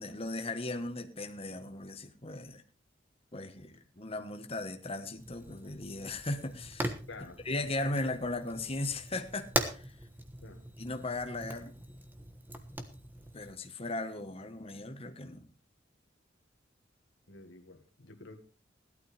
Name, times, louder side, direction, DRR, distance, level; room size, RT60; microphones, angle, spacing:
voice 1, 0.0-2.6 3.3-6.9 7.4-9.9 10.8-11.7 13.3-15.5, left 2 dB, 30° left, 1.3 m, -37 dB
Fire, 5.2-13.5, right 1 dB, 10° right, 1.3 m, -40 dB
voice 2, 7.1-7.4 10.4-10.6 17.3-18.4, left 3 dB, 85° left, 1.9 m, -49 dB
17.0 x 12.0 x 3.4 m
head